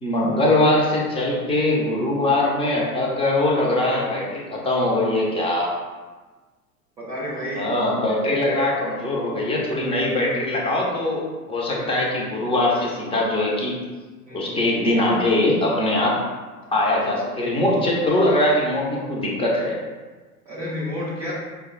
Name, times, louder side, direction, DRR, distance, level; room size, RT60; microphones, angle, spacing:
voice 1, 0.0-5.7 7.5-11.2 11.5-13.7 14.3-16.1 16.7-19.7, left 1 dB, 10° left, -3 dB, 0.8 m, -21 dB
voice 2, 7.0-7.7 11.8-11.9 14.3-14.6 15.9-16.1 17.0-17.1 20.5-21.3, left 1 dB, 10° right, -10 dB, 0.3 m, -31 dB
5.3 x 2.3 x 3.9 m, 1.3 s
figure-of-eight pair, 85°, 45 cm